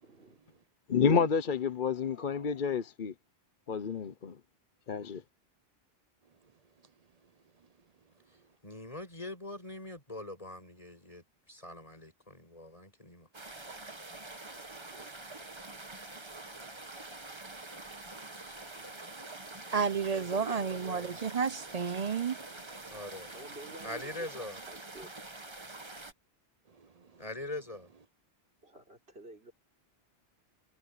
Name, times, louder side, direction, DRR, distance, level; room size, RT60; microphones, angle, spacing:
voice 1, 0.0-0.4 8.2-8.6 14.9-15.1 18.7-19.2 20.2-21.2 23.3-25.1 28.6-29.5, right 1 dB, 65° right, 4.7 m, -51 dB
voice 2, 0.9-3.1 3.7-4.3 4.9-5.2, left 6 dB, 50° left, 1.0 m, -29 dB
voice 3, 8.6-13.3 22.9-23.3 23.8-24.6 27.2-27.9, left 2 dB, 35° left, 6.0 m, -43 dB
sound 1, 13.3-26.1, right 2 dB, 25° right, 1.5 m, -46 dB
voice 4, 19.7-22.4, right 6 dB, 45° right, 0.6 m, -31 dB
omnidirectional pair, 1.1 m